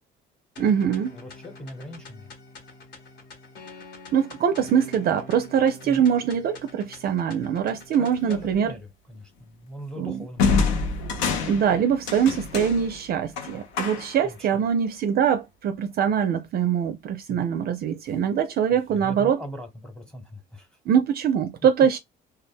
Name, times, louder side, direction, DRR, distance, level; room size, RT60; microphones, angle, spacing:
sound 1, 0.6-8.6, left 3 dB, 55° left, 1.1 m, -46 dB
voice 1, 0.6-1.2 4.1-8.7 10.0-10.1 11.4-19.4 20.9-22.0, right 8 dB, 50° right, 0.4 m, -23 dB
voice 2, 1.1-2.3 5.8-6.1 8.0-10.7 14.2-14.6 17.3-17.5 18.9-20.8, equal, 5° left, 1.0 m, -40 dB
sound 2, 8.3-8.6 10.4-14.3, left 4 dB, 90° left, 0.7 m, -27 dB
2.1 x 2.1 x 3.5 m
cardioid pair, 100°, 21 cm